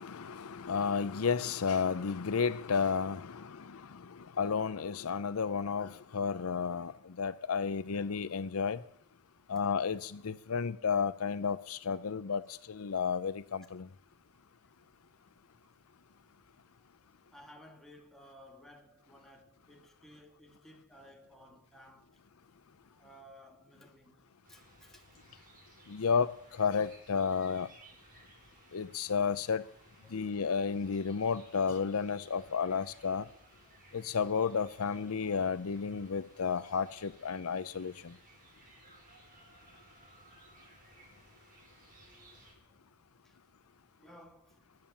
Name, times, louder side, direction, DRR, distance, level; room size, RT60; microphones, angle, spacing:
voice 1, 0.0-8.8 9.5-13.9 25.9-27.7 28.7-29.6 30.1-33.3 33.9-38.2, left 6 dB, 75° left, 0.6 m, -32 dB
voice 2, 17.3-22.2 22.9-24.2 24.5-25.1 30.0-30.2 33.6-33.8 41.0-41.5 41.9-42.8 43.2-43.4 43.7-44.8, equal, ahead, 2.2 m, -57 dB
sound 1, 24.4-42.5, right 2 dB, 40° right, 5.9 m, -60 dB
20.5 x 9.0 x 7.2 m
head